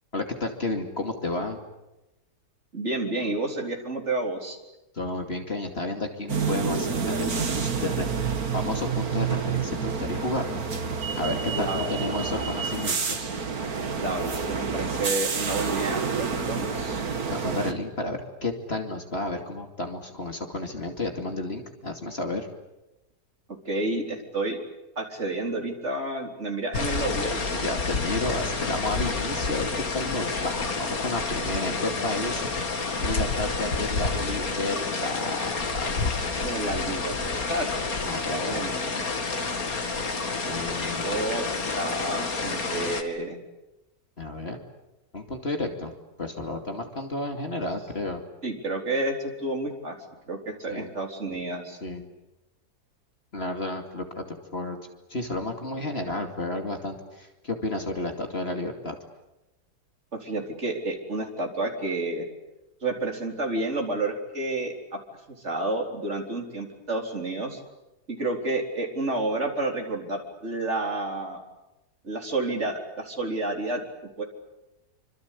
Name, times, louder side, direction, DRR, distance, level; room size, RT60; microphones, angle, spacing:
voice 1, 0.1-1.6 4.9-8.1 8.5-10.6 11.2-13.3 17.3-22.5 27.5-32.4 33.0-35.9 38.1-38.6 40.4-41.2 44.2-44.6 45.1-45.9 46.2-48.2 50.7-50.9 51.8-52.0 53.3-54.3 54.5-54.8 55.1-59.0, left 2 dB, 40° left, 4 dB, 2.8 m, -32 dB
voice 2, 2.7-4.6 11.5-12.7 14.0-17.0 23.6-24.6 25.0-27.5 31.5-31.6 36.3-37.1 37.5-37.7 38.3-39.1 41.0-41.5 41.7-43.4 48.4-50.0 50.3-51.8 60.1-62.2 62.8-65.0 65.4-67.6 68.1-71.4 72.0-73.8 74.2-74.3, right 2 dB, 45° right, 2 dB, 4.3 m, -30 dB
sound 1, 6.3-17.7, right 5 dB, 70° right, 2.4 m, -28 dB
sound 2, 26.7-43.0, left 4 dB, 65° left, 2.7 m, -29 dB
26.5 x 25.5 x 8.4 m, 0.97 s
omnidirectional pair, 1.6 m